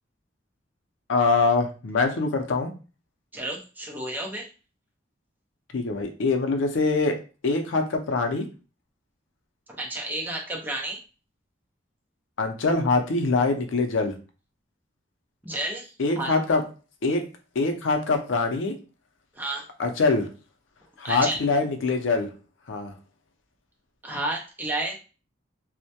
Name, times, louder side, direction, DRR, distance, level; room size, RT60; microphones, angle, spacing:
voice 1, 1.1-2.7 5.7-7.2 7.4-8.5 12.4-14.1 16.0-16.6 17.0-17.2 17.6-18.7 19.8-20.3 21.0-22.3 22.7-22.9, left 3 dB, 85° left, 5 dB, 0.5 m, -24 dB
voice 2, 3.3-4.5 9.8-11.0 15.4-16.3 19.4-19.7 21.0-21.4 24.0-25.0, right 1 dB, 10° right, -1 dB, 0.5 m, -31 dB
2.2 x 2.1 x 2.7 m, 0.34 s
head